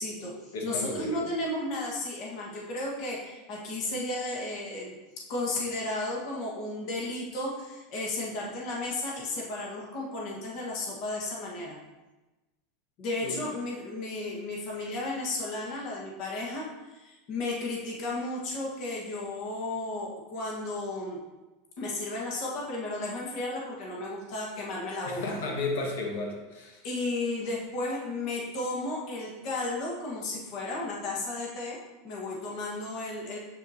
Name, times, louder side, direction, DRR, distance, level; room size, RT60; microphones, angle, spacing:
voice 1, 0.0-4.9 5.3-11.8 13.0-21.2 21.8-25.4 26.8-31.8 32.0-33.4, left 2 dB, 40° left, -3 dB, 1.4 m, -34 dB
voice 2, 0.5-1.2 13.2-13.4 25.1-26.8, left 2 dB, 85° left, 0 dB, 1.4 m, -33 dB
7.2 x 7.1 x 2.8 m, 1.1 s
supercardioid pair, 175°, 0 cm